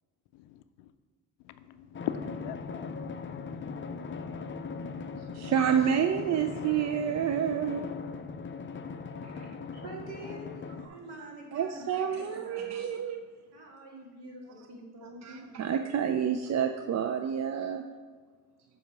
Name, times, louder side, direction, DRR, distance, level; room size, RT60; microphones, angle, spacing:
voice 1, 0.3-0.6 1.4-5.5, left 11 dB, 75° left, 0.5 m, -43 dB
Drum, 1.9-10.9, left 5 dB, 25° left, 0.6 m, -39 dB
voice 2, 5.2-7.8 9.3-9.5 11.5-13.2 15.0-17.8, right 8 dB, 40° right, 0.4 m, -29 dB
voice 3, 9.7-12.8 13.5-15.6, right 2 dB, 60° right, 1.8 m, -46 dB
7.2 x 2.9 x 5.9 m
hypercardioid pair, 50°, 44 cm